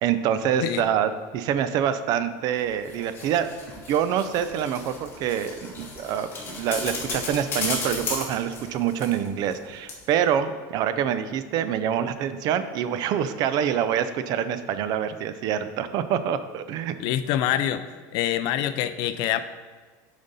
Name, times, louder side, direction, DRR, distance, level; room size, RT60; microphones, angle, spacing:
voice 1, 0.0-3.5 3.9-16.9, right 9 dB, 50° right, 12 dB, 0.5 m, -26 dB
sound 1, 2.6-9.6 9.9-10.0, left 3 dB, 25° left, 1.8 m, -35 dB
voice 2, 17.0-17.8 18.1-19.4, left 11 dB, 55° left, 12 dB, 0.4 m, -25 dB
8.9 x 5.2 x 4.1 m, 1.4 s
supercardioid pair, 145°, 9 cm